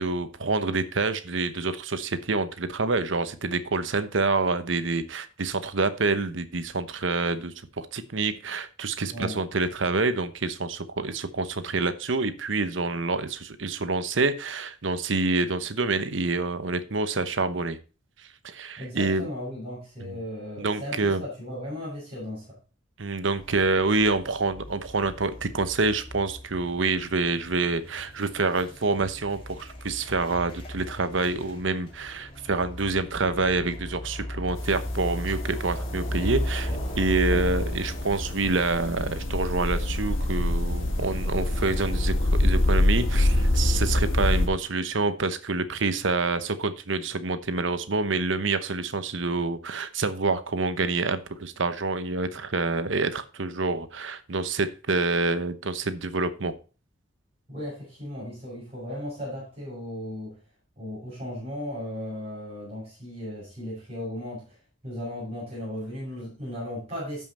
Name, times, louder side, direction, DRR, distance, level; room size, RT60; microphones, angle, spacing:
voice 1, 0.0-17.8 18.4-19.3 20.6-21.2 23.0-56.5, right 3 dB, 65° right, 12 dB, 0.9 m, -27 dB
voice 2, 9.1-9.4 18.8-22.6 57.5-60.4 60.8-64.6 64.8-67.2, left 1 dB, 30° right, -6 dB, 6.5 m, -36 dB
sound 1, 23.4-42.1, equal, 25° left, 2.5 m, -36 dB
sound 2, 34.6-44.5, left 1 dB, 80° left, 1.4 m, -26 dB
12.5 x 5.7 x 4.3 m, 0.33 s
head